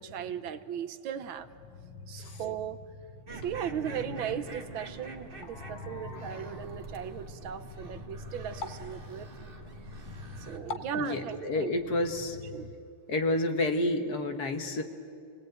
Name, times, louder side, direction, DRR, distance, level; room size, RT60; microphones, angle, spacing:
voice 1, 0.0-1.5 2.1-2.8 3.4-9.3 10.4-11.7 12.5-12.7, right 9 dB, 75° right, 11 dB, 1.6 m, -37 dB
sound 1, 1.2-12.8, left 3 dB, 80° left, 1.8 m, -47 dB
sound 2, 3.3-10.6, right 2 dB, 25° right, 1.7 m, -45 dB
voice 2, 5.5-6.6 10.7-12.4 13.1-14.8, left 2 dB, 50° left, 6 dB, 1.8 m, -31 dB
27.0 x 18.5 x 9.2 m, 2.5 s
omnidirectional pair, 2.3 m